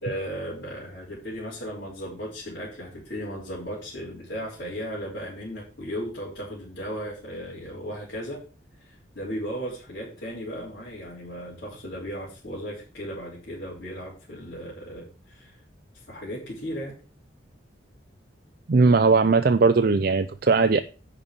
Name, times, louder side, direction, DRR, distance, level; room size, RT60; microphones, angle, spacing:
voice 1, 0.0-8.4 8.8-15.6 16.1-16.9, equal, 50° left, 3.4 m, -36 dB
voice 2, 18.7-20.8, right 4 dB, 50° right, 0.4 m, -19 dB
10.5 x 4.3 x 7.3 m
head